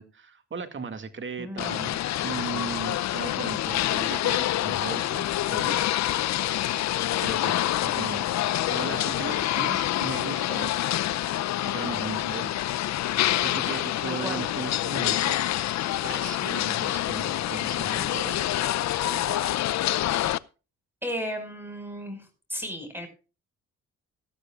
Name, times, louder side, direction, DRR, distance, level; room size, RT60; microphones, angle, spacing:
voice 1, 0.0-5.8 7.2-11.0 11.7-12.8 13.4-15.4 16.0-18.4 18.9-19.5, right 4 dB, 40° right, 8 dB, 2.1 m, -37 dB
voice 2, 1.4-1.7 14.1-14.4 21.0-23.1, equal, 5° right, 7 dB, 5.4 m, -34 dB
sound 1, 1.6-20.4, left 13 dB, 65° left, 0.6 m, -27 dB
18.0 x 13.0 x 2.4 m, 0.33 s
cardioid pair, 90°, 30 cm